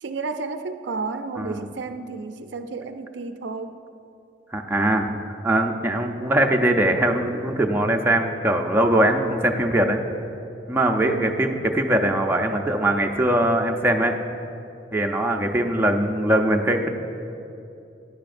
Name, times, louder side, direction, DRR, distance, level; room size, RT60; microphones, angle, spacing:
voice 1, 0.0-3.8 9.1-9.6 11.0-11.6, right 3 dB, 70° right, 8 dB, 0.4 m, -32 dB
voice 2, 4.5-5.1 5.4-10.0 10.7-14.1 14.9-16.9, right 1 dB, 10° right, 2 dB, 0.5 m, -21 dB
13.5 x 10.5 x 2.6 m, 2.8 s
head